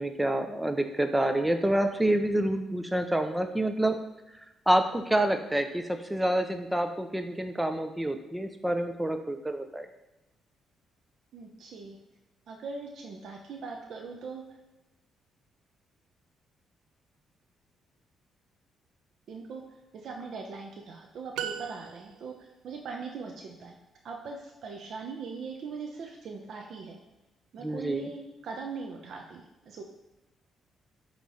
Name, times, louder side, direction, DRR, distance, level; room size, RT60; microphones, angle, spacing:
voice 1, 0.0-4.0 4.7-9.9 27.6-28.1, right 1 dB, 10° right, 7 dB, 0.6 m, -27 dB
voice 2, 11.3-12.0 12.5-14.4 19.3-19.6 19.9-23.8 24.0-27.0 27.5-29.8, right 4 dB, 65° right, 1 dB, 0.8 m, -40 dB
sound 1, 21.3-22.5, right 9 dB, 85° right, 0.3 m, -38 dB
8.3 x 3.1 x 4.1 m, 1.0 s
cardioid pair, 90°, 0 cm